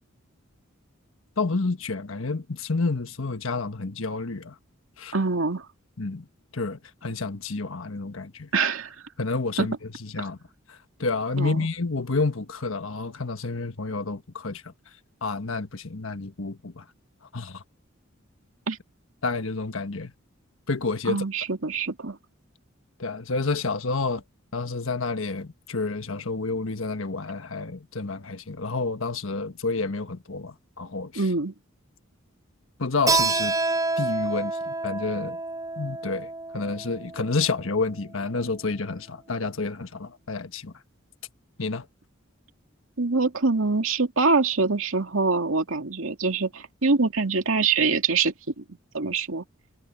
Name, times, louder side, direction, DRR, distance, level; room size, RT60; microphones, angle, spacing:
voice 1, 1.4-4.5 5.0-5.1 6.0-6.2 6.5-8.5 9.2-9.7 10.1-10.4 11.0-14.6 15.2-16.8 17.3-17.6 19.2-20.1 20.7-21.2 23.0-24.2 24.5-31.1 32.8-33.5 34.0-35.4 35.8-40.7 41.6-41.8, left 3 dB, 75° left, 1.4 m, -29 dB
voice 2, 5.1-5.7 8.5-9.0 9.6-9.7 10.2-10.3 11.4-11.7 18.7-18.8 21.1-22.2 31.2-31.5 43.0-48.6 48.9-49.4, right 4 dB, 80° right, 2.4 m, -24 dB
Keyboard (musical), 33.1-38.3, right 3 dB, 20° right, 7.8 m, -28 dB
head